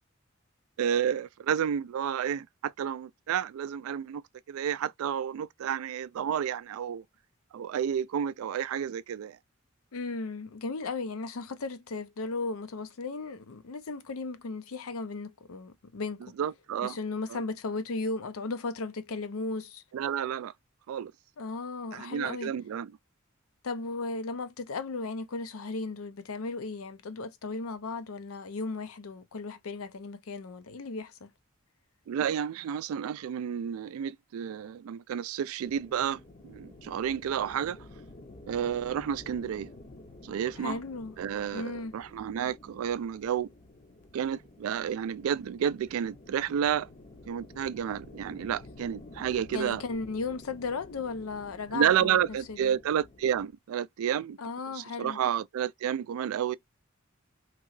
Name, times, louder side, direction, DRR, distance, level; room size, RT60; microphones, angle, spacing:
voice 1, 0.8-4.2 4.5-7.0 7.5-9.4 16.4-17.0 17.3-17.4 19.9-20.5 20.9-21.1 21.9-22.9 32.1-37.8 38.5-39.7 40.2-40.8 41.2-43.5 44.1-46.9 47.3-49.8 51.7-54.4 54.7-56.6, right 9 dB, 85° right, 0.3 m, -31 dB
voice 2, 9.9-16.4 16.8-19.8 21.4-22.5 23.6-31.3 40.6-41.1 41.5-41.9 49.5-52.2 52.5-52.8 54.4-55.2, left 3 dB, 85° left, 0.6 m, -36 dB
sound 1, 35.6-53.5, left 2 dB, 35° left, 0.6 m, -51 dB
3.0 x 2.8 x 2.5 m
head